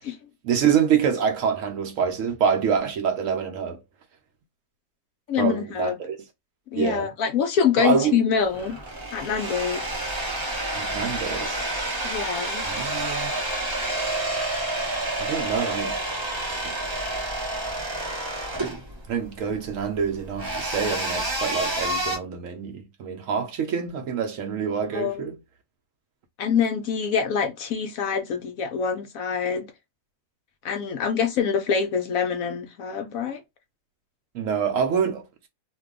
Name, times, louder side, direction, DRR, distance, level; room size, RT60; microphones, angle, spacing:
voice 1, 0.4-3.8 5.4-6.2 6.7-7.1 7.8-8.1 10.7-11.7 12.6-13.3 15.2-16.0 16.5-16.9 19.1-25.4 34.3-35.3, right 7 dB, 70° right, 0.8 m, -26 dB
voice 2, 5.3-5.9 6.7-8.8 9.1-9.8 12.0-12.7 24.9-25.2 26.4-29.7 30.6-33.4, left 7 dB, 70° left, 0.8 m, -25 dB
sound 1, 8.4-22.2, right 1 dB, 45° right, 0.3 m, -29 dB
2.7 x 2.2 x 3.6 m
omnidirectional pair, 1.8 m